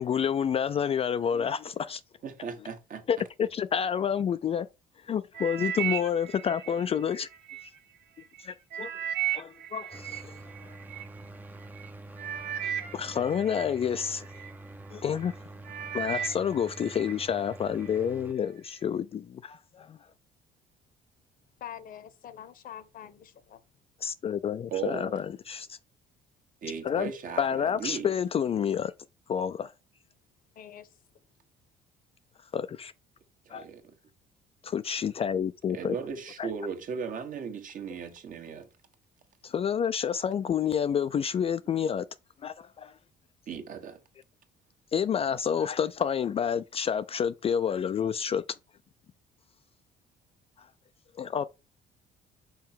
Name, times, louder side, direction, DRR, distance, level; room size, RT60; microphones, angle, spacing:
voice 1, 0.0-2.0 3.1-4.7 5.0-7.3 8.4-8.9 9.3-10.4 12.9-14.3 14.9-15.3 15.9-20.0 24.0-25.8 26.8-27.1 27.4-28.9 29.3-29.7 32.5-32.9 33.5-33.7 34.6-35.9 36.4-36.5 39.4-42.0 42.4-42.9 44.9-48.4 50.6-50.7 51.2-51.5, left 8 dB, 35° left, 0.4 m, -29 dB
voice 2, 2.2-3.0 24.7-25.2 26.6-28.1 33.5-33.9 35.7-38.7 43.5-44.0, right 6 dB, 50° right, 1.4 m, -37 dB
sound 1, 5.3-7.7 8.2-11.1 11.8-11.9 12.2-14.5 15.1-15.3 15.6-17.2 17.5-18.0 18.6-18.7, right 10 dB, 90° right, 1.5 m, -35 dB
sound 2, 9.9-18.3, right 2 dB, 10° right, 0.6 m, -46 dB
voice 3, 21.6-23.6 30.5-31.0, left 10 dB, 55° left, 0.9 m, -45 dB
5.8 x 4.8 x 4.5 m
cardioid pair, 110°, 17 cm